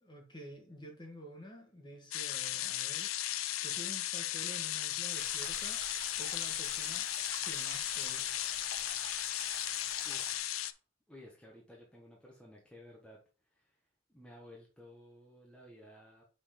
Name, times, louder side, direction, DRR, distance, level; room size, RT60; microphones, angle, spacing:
voice 1, 0.0-3.1 3.6-5.8 6.2-7.1 7.4-8.4, equal, 20° left, 1.4 m, -49 dB
sound 1, 2.1-10.7, left 13 dB, 75° left, 0.5 m, -36 dB
sound 2, 5.1-10.4, right 6 dB, 65° right, 1.0 m, -48 dB
voice 2, 10.0-10.8 11.1-13.2 13.4-13.8 14.1-16.2, left 1 dB, 5° left, 1.2 m, -55 dB
5.7 x 4.1 x 5.0 m
head